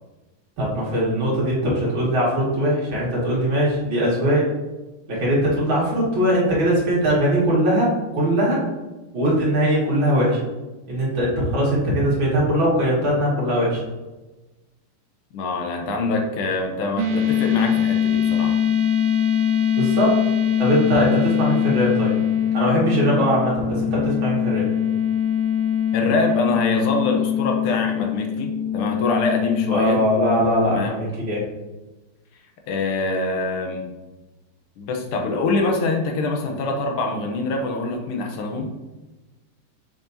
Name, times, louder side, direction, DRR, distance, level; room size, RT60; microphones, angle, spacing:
voice 1, 0.6-4.5 5.1-8.6 9.1-10.4 10.9-13.8 19.8-20.2 20.6-22.1 22.5-24.7 29.7-31.4, equal, 60° right, -6 dB, 2.8 m, -21 dB
voice 2, 15.3-18.6 25.9-30.0 30.6-30.9 32.7-33.9 34.8-38.7, left 3 dB, 85° left, 2 dB, 1.8 m, -24 dB
sound 1, 17.0-30.8, left 9 dB, 80° right, 1.8 m, -22 dB
6.8 x 5.9 x 2.7 m, 1.1 s
omnidirectional pair, 2.4 m